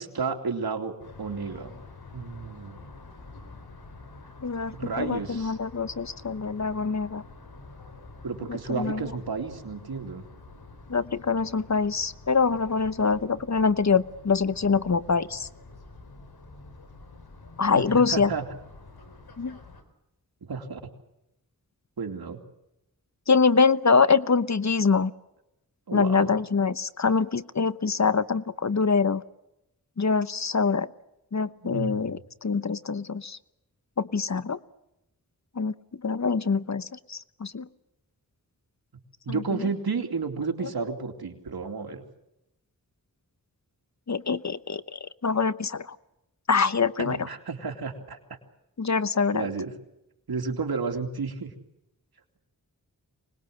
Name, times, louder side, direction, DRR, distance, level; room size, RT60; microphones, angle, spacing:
voice 1, 0.0-1.7 2.1-2.9 4.7-5.6 8.2-10.2 17.7-18.5 20.4-20.9 22.0-22.4 25.9-26.4 31.6-32.2 39.2-42.0 47.0-48.4 49.3-49.7 50.3-51.5, right 4 dB, 85° right, 4 dB, 2.9 m, -32 dB
sound 1, 1.0-19.8, left 3 dB, 85° left, 4.1 m, -47 dB
voice 2, 4.4-7.2 8.7-9.0 10.9-15.5 17.6-18.3 19.4-19.6 23.3-25.1 25.9-29.2 30.0-30.9 31.3-33.4 34.0-34.6 35.6-35.7 36.0-37.7 39.3-39.4 44.1-46.0 46.5-47.2 48.8-49.5, left 5 dB, 50° left, 15 dB, 1.1 m, -24 dB
25.5 x 20.5 x 7.8 m, 0.86 s
cardioid pair, 50°, 36 cm